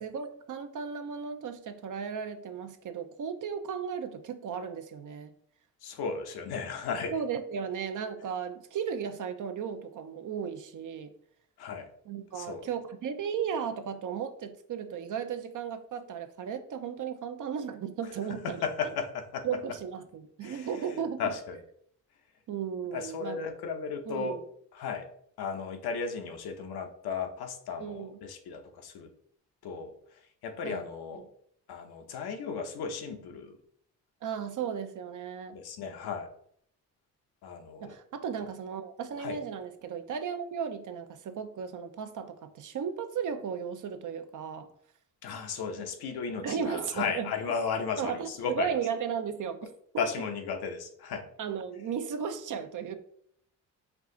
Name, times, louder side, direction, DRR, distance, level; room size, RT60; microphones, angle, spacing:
voice 1, 0.0-5.3 7.1-11.1 12.1-18.6 19.4-21.3 22.5-23.4 24.1-24.4 27.8-28.2 30.6-30.8 34.2-35.6 37.8-44.7 46.4-47.3 48.0-50.1 51.4-52.9, right 7 dB, 50° right, 9 dB, 0.6 m, -35 dB
voice 2, 5.8-7.1 11.6-11.9 12.3-12.7 18.4-19.5 20.4-20.7 21.2-21.6 22.9-24.4 24.7-25.1 25.4-29.1 29.6-31.2 31.7-33.6 35.5-36.3 37.4-38.0 39.2-39.4 45.2-48.8 50.0-51.3, left 5 dB, 70° left, 5 dB, 0.8 m, -35 dB
4.6 x 2.4 x 3.7 m, 0.66 s
supercardioid pair, 70°, 39 cm